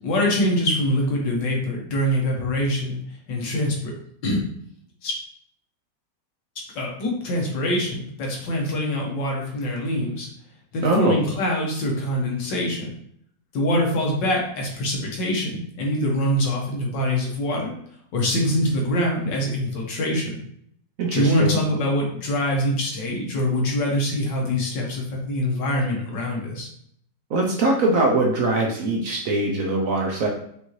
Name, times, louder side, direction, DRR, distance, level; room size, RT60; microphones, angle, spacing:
voice 1, 0.0-3.0 3.3-3.9 4.2-4.4 5.0-5.2 6.8-10.3 10.7-12.9 13.5-17.7 18.1-20.4 21.1-26.7, left 1 dB, 75° left, -1 dB, 1.7 m, -24 dB
voice 2, 10.8-11.2 21.0-21.6 27.3-30.3, right 2 dB, 65° right, 0 dB, 0.8 m, -22 dB
5.1 x 2.6 x 3.0 m, 0.67 s
omnidirectional pair, 2.0 m